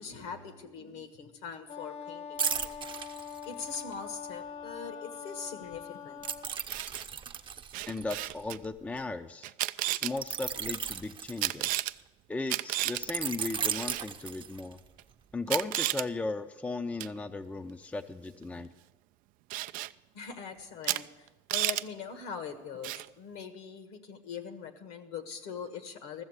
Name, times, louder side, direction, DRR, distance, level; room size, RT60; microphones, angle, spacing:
voice 1, 0.0-2.8 3.4-6.2 20.1-26.2, left 6 dB, 70° left, 9 dB, 1.5 m, -42 dB
Wind instrument woodwind instrument, 1.7-6.6, left 7 dB, 50° left, 1.0 m, -43 dB
sound 1, 2.4-3.9 6.2-9.0 10.2-12.0 13.0-14.9 15.3-15.5, right 7 dB, 30° right, 0.7 m, -36 dB
Camera, 6.5-7.0 7.7-8.6 9.4-10.1 11.4-11.9 12.5-13.0 13.7-14.0 15.0-15.1 15.5-16.1 17.0-17.2 19.5-19.9 20.8-21.0 21.3-21.8 22.8-23.1, right 16 dB, 55° right, 0.4 m, -32 dB
voice 2, 7.9-9.5 9.9-11.8 12.3-14.8 15.3-18.7, left 3 dB, 10° left, 9 dB, 0.5 m, -36 dB
14.0 x 7.1 x 8.1 m, 1.1 s
supercardioid pair, 90°, 17 cm